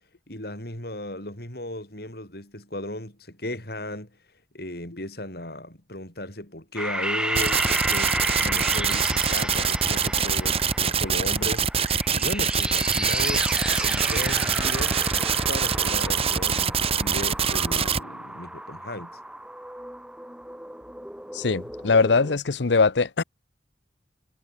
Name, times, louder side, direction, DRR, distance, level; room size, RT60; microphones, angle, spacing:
voice 1, 0.3-4.1 4.5-8.2 8.4-13.5 13.8-15.0 15.5-19.2, left 1 dB, 60° left, 7.4 m, -36 dB
sound 1, 6.8-22.4, right 1 dB, 5° right, 2.6 m, -32 dB
sound 2, 7.4-18.0, right 6 dB, 35° right, 2.0 m, -24 dB
voice 2, 21.3-23.2, left 4 dB, 85° left, 0.8 m, -21 dB
head